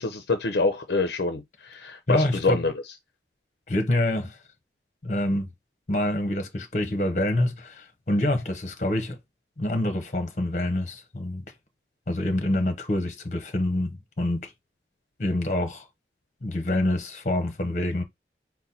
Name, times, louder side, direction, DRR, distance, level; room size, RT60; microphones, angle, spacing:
voice 1, 0.0-2.7, left 3 dB, 65° left, 0.5 m, -26 dB
voice 2, 2.1-2.6 3.7-4.4 5.0-5.5 5.9-9.2 9.6-11.4 12.1-14.5 15.2-15.8 16.4-18.0, left 1 dB, 40° left, 0.9 m, -26 dB
4.0 x 2.2 x 4.1 m
head